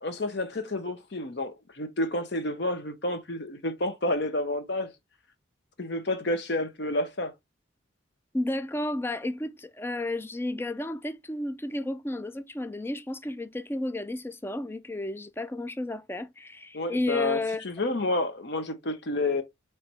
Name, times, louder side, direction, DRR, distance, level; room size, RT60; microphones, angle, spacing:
voice 1, 0.0-4.9 5.8-7.3 16.7-19.4, left 2 dB, 55° left, 0.9 m, -30 dB
voice 2, 8.3-17.6, left 1 dB, 10° left, 0.3 m, -32 dB
4.6 x 3.3 x 2.8 m
head